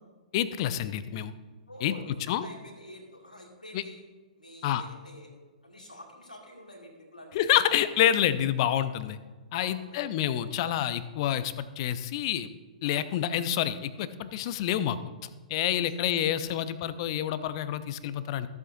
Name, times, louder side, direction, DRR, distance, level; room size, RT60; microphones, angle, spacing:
voice 1, 0.3-1.3 1.8-1.9 2.3-2.5 3.7-3.8 4.6-4.8 7.3-9.2 9.5-12.5 12.8-15.0 15.5-18.5, left 11 dB, 40° left, 14 dB, 0.6 m, -28 dB
voice 2, 1.7-2.0 2.4-4.0 4.4-5.3 5.6-7.4 9.5-10.1 15.8-16.1, left 1 dB, 85° left, 0 dB, 2.2 m, -48 dB
14.5 x 7.9 x 2.6 m, 1.4 s
figure-of-eight pair, 110°, 4 cm